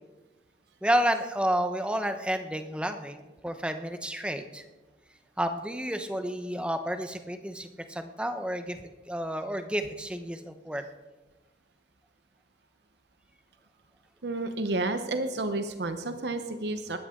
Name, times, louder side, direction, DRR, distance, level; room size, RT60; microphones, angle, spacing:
voice 1, 0.8-4.6 5.4-10.8, equal, 5° right, 7 dB, 0.8 m, -30 dB
voice 2, 14.2-17.0, right 2 dB, 70° right, 8 dB, 0.9 m, -31 dB
19.5 x 13.5 x 3.8 m, 1.2 s
head